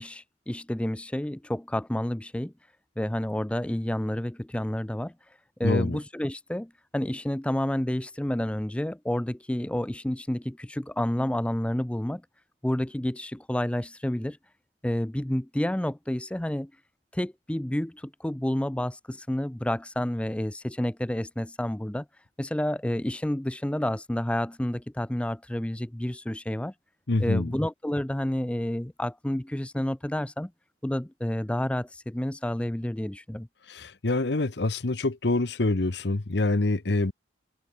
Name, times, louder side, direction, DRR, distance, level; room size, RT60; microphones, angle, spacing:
voice 1, 0.0-2.5 3.0-5.1 5.6-12.2 12.6-14.4 14.8-16.7 17.1-22.1 22.4-26.7 27.2-30.5 30.8-33.5, left 1 dB, 5° left, 0.4 m, -29 dB
voice 2, 5.6-6.0 27.1-27.5 33.7-37.1, left 2 dB, 60° left, 1.0 m, -26 dB
head